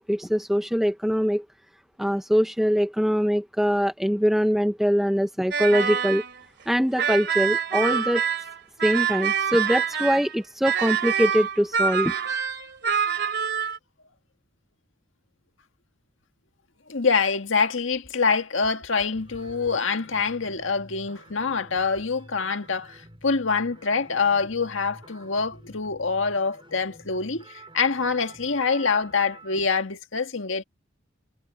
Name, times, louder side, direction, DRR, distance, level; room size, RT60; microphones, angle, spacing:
voice 1, 0.0-1.4 2.0-6.2 6.7-8.2 8.8-12.1, equal, ahead, 0.5 m, -23 dB
sound 1, 5.5-6.4 7.0-10.4 10.6-13.8, right 7 dB, 60° right, 2.8 m, -26 dB
voice 2, 16.9-30.6, left 4 dB, 80° left, 1.8 m, -25 dB
sound 2, 19.1-29.7, right 1 dB, 25° right, 6.1 m, -49 dB
head